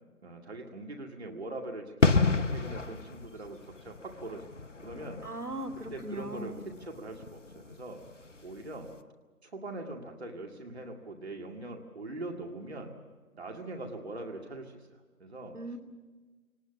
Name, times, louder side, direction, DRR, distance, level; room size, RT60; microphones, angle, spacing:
voice 1, 0.2-5.2 5.9-6.5 6.9-8.0 8.4-8.9 9.4-13.0 13.3-14.9 15.2-15.6, right 2 dB, 45° right, 2 dB, 2.3 m, -42 dB
sound 1, 2.0-8.5 8.8-8.9, left 4 dB, 55° left, 1.0 m, -31 dB
voice 2, 5.2-6.7 15.5-15.8, right 1 dB, 80° right, 4 dB, 3.0 m, -39 dB
23.5 x 19.5 x 7.2 m, 1.3 s
figure-of-eight pair, 165°, 45 cm